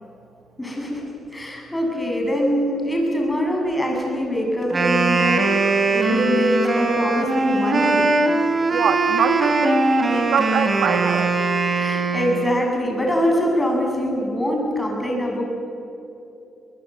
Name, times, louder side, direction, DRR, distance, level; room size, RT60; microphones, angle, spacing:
voice 1, 0.6-1.0 1.3-8.1 11.7-15.4, equal, 15° left, 0 dB, 7.9 m, -23 dB
Wind instrument woodwind instrument, 4.6-12.7, right 3 dB, 35° right, 3.1 m, -20 dB
voice 2, 8.7-11.3, right 7 dB, 70° right, 8 dB, 1.4 m, -24 dB
24.0 x 20.0 x 9.3 m, 2.8 s
cardioid pair, 90°, 0 cm